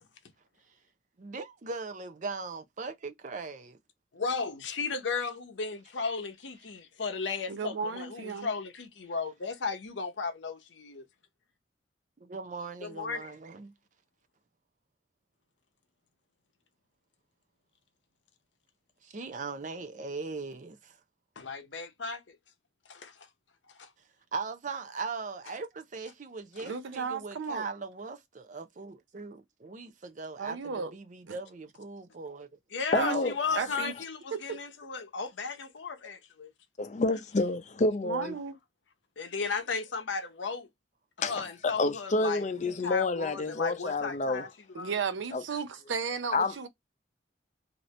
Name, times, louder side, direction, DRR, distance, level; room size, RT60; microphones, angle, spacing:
voice 1, 1.2-3.8 12.3-13.7 19.0-21.0 24.3-32.5, right 4 dB, 45° right, 0.5 m, -39 dB
voice 2, 4.1-11.0 12.8-13.3 21.4-22.4 22.9-23.3 23.7-23.9 26.6-26.7 32.7-36.5 39.2-40.7 41.2-44.5 44.7-45.0, left 4 dB, 80° left, 0.7 m, -35 dB
voice 3, 7.5-8.5 26.6-27.7 30.4-30.9 31.3-31.4 32.9-33.9 34.3-34.6 38.0-38.6 44.7-46.7, right 5 dB, 85° right, 0.6 m, -34 dB
voice 4, 32.9-33.6 36.8-38.4 41.2-44.5 45.3-45.4 46.3-46.5, left 3 dB, 40° left, 0.5 m, -29 dB
2.9 x 2.6 x 3.1 m
head